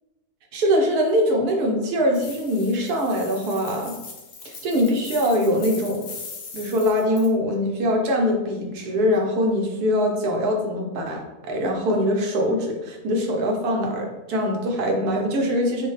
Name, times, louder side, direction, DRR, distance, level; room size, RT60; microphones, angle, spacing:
voice 1, 0.5-3.9 4.4-6.1 6.5-15.9, equal, 75° right, 0 dB, 1.4 m, -23 dB
sound 1, 2.1-7.3, left 4 dB, 60° left, 1.0 m, -40 dB
5.5 x 2.2 x 3.2 m, 1.1 s
omnidirectional pair, 1.7 m